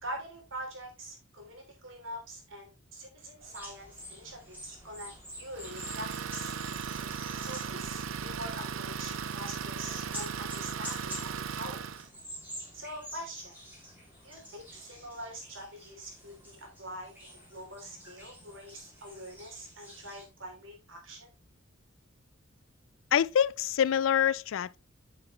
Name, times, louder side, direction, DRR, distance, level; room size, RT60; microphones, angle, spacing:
voice 1, 0.0-6.5 7.4-11.9 12.7-13.5 14.2-17.1 17.5-21.3, right 1 dB, 70° right, 3.1 m, -44 dB
sound 1, 3.4-20.2, equal, 10° right, 2.8 m, -48 dB
Idling, 5.6-12.1, right 6 dB, 85° right, 0.6 m, -37 dB
voice 2, 23.1-24.8, left 9 dB, 70° left, 0.3 m, -26 dB
9.1 x 5.6 x 3.1 m
head